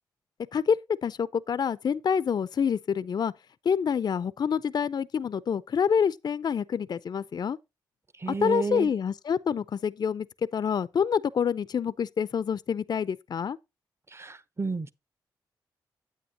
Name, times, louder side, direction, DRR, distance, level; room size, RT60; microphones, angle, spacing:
voice 1, 0.5-3.3 3.6-7.6 8.3-10.3 10.5-13.6, left 7 dB, 50° left, 0.5 m, -27 dB
voice 2, 8.2-8.9 14.1-14.9, right 4 dB, 30° right, 0.8 m, -31 dB
9.4 x 8.5 x 2.8 m
hypercardioid pair, 45°, 9 cm